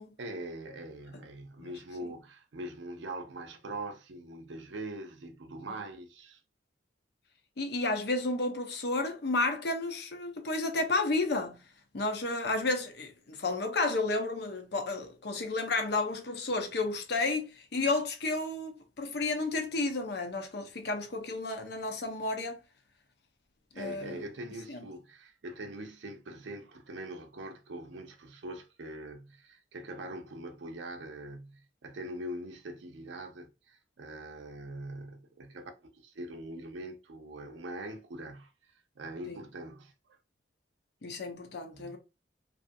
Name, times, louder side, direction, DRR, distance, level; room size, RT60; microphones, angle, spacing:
voice 1, 0.2-6.4 23.7-39.9 41.7-42.0, right 1 dB, 80° right, 0.6 m, -43 dB
voice 2, 7.6-11.6 11.9-22.6 23.7-24.2 24.7-24.8 39.3-39.4 41.0-42.0, left 2 dB, 60° left, 0.6 m, -32 dB
2.6 x 2.4 x 2.6 m
head